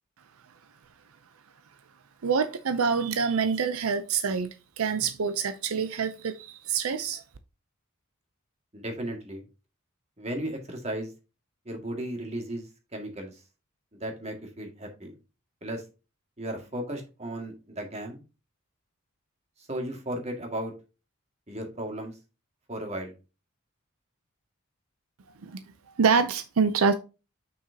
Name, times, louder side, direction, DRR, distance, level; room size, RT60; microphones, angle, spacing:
voice 1, 2.2-4.5 4.8-7.2 25.4-25.6 26.0-26.9, right 5 dB, 80° right, 0.6 m, -26 dB
voice 2, 8.7-9.4 10.2-11.1 11.7-12.7 12.9-13.4 14.0-15.1 15.6-15.8 16.4-18.2 19.7-20.7 21.5-22.1 22.7-23.1, right 1 dB, 30° right, 2.0 m, -35 dB
7.1 x 5.9 x 2.8 m
head